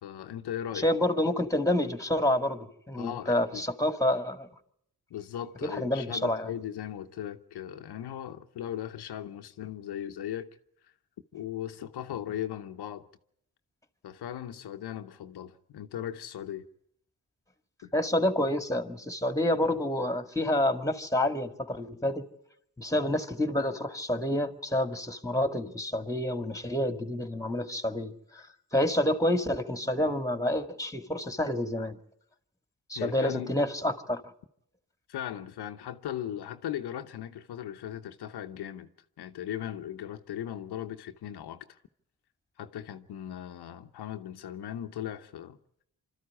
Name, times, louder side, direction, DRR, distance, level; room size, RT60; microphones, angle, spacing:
voice 1, 0.0-0.9 2.9-3.6 5.1-10.5 11.3-13.0 14.0-16.7 17.8-17.9 32.9-33.5 35.1-38.9 39.2-41.8 42.6-45.6, left 10 dB, 90° left, 0.9 m, -38 dB
voice 2, 0.7-4.5 5.6-6.5 17.9-22.2 22.8-28.4 28.7-32.0 32.9-34.2, left 1 dB, 10° left, 2.1 m, -28 dB
25.0 x 13.0 x 9.7 m
cardioid pair, 50°, 38 cm